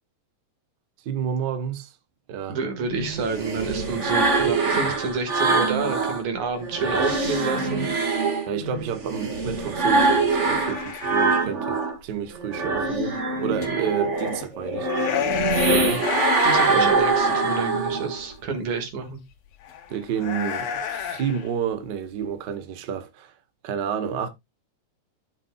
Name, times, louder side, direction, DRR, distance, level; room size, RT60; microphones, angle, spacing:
voice 1, 1.0-1.9 2.3-2.6 8.5-16.0 16.6-16.9 19.9-23.3 23.6-24.3, right 8 dB, 65° right, 1.1 m, -30 dB
voice 2, 2.5-7.9 13.7-13.8 16.4-19.2, right 4 dB, 80° right, 3.2 m, -29 dB
sound 1, 2.8-6.2 6.6-12.0 12.3-18.2, right 3 dB, 35° right, 1.2 m, -24 dB
sound 2, 10.3-11.5 13.6-13.7 14.2-14.5 14.7-16.8 17.2-17.3 18.4-18.5 19.6-21.5, left 9 dB, 70° left, 2.1 m, -30 dB
13.5 x 6.0 x 2.2 m
omnidirectional pair, 3.3 m